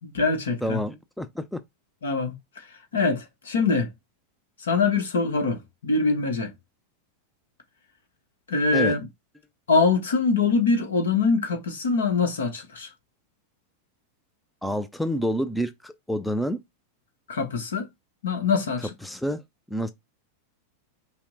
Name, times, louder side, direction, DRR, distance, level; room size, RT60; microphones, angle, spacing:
voice 1, 0.0-0.8 2.0-2.3 2.9-3.9 4.6-6.5 8.5-9.0 9.7-12.9 17.3-17.9 18.2-18.9, left 4 dB, 65° left, 1.1 m, -23 dB
voice 2, 0.6-1.6 8.7-9.0 14.6-16.6 19.0-19.4 19.7-19.9, equal, ahead, 0.5 m, -28 dB
5.7 x 2.1 x 3.8 m
figure-of-eight pair, 90°, 0 cm